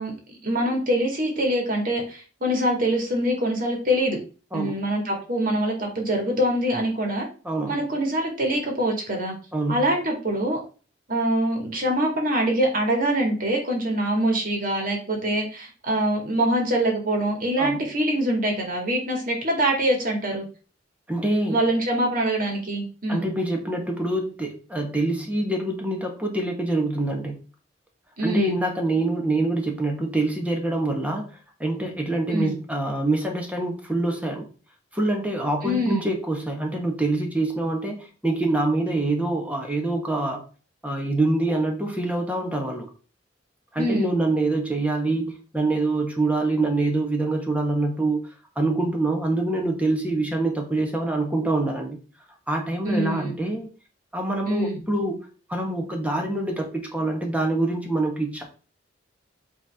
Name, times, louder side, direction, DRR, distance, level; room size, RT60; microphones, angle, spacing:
voice 1, 0.0-4.2 4.5-7.3 7.7-9.3 9.7-10.6 11.1-20.5 21.5-23.3 28.2-28.6 32.3-32.6 35.6-36.1 43.8-44.2 52.8-53.4 54.5-54.8, right 1 dB, 50° right, 1 dB, 2.0 m, -24 dB
voice 2, 7.4-7.8 9.5-9.8 17.6-17.8 21.1-21.6 23.1-27.4 28.2-31.3 31.6-34.5 34.9-40.4 40.8-42.9 43.7-48.2 48.5-52.0 52.5-53.7 54.1-55.2 55.5-58.4, right 2 dB, 10° right, 2 dB, 1.4 m, -25 dB
8.2 x 3.5 x 3.5 m, 0.37 s
head